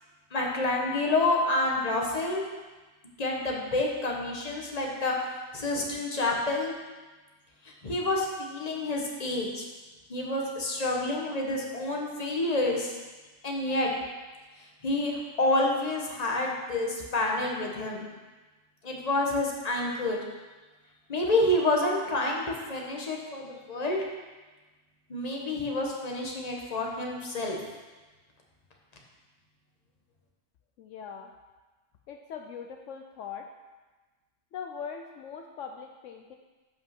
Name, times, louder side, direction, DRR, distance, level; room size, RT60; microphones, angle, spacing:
voice 1, 0.3-2.4 3.2-5.1 5.5-6.7 7.8-9.6 10.1-13.0 13.4-13.9 14.8-18.0 18.8-20.2 21.1-24.0 25.1-27.6, left 2 dB, 30° left, -1 dB, 1.4 m, -28 dB
voice 2, 30.8-31.3 32.1-33.5 34.5-36.4, left 7 dB, 75° left, 3 dB, 1.0 m, -41 dB
8.1 x 5.6 x 5.9 m, 1.2 s
omnidirectional pair, 1.3 m